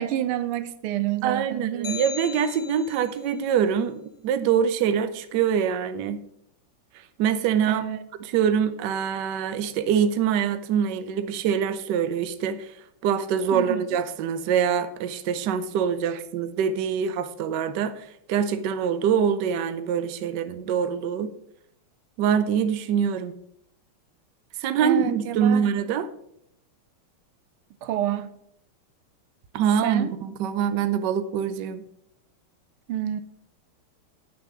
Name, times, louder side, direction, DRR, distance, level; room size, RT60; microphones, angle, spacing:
voice 1, 0.0-2.0 7.7-8.0 13.5-13.8 24.8-25.7 27.8-28.3 29.8-30.1 32.9-33.2, right 11 dB, 85° right, 13 dB, 1.6 m, -28 dB
voice 2, 1.2-6.2 7.2-7.8 8.3-12.7 13.0-21.3 22.2-23.3 24.6-26.1 29.5-31.8, right 8 dB, 65° right, 11 dB, 1.2 m, -24 dB
sound 1, 1.8-3.2, left 6 dB, 65° left, 0.7 m, -37 dB
9.5 x 6.5 x 5.7 m, 0.74 s
omnidirectional pair, 2.3 m